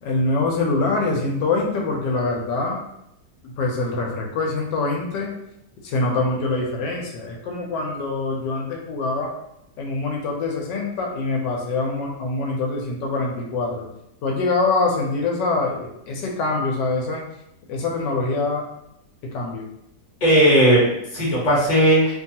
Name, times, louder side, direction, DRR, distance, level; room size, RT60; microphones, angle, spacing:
voice 1, 0.0-2.8 3.4-5.3 5.8-9.3 9.8-13.8 14.2-17.2 17.7-18.6 19.3-19.6, left 3 dB, 85° left, 0 dB, 1.2 m, -24 dB
voice 2, 20.2-22.1, right 1 dB, 30° left, -6 dB, 1.0 m, -16 dB
3.0 x 2.3 x 2.7 m, 0.79 s
omnidirectional pair, 1.8 m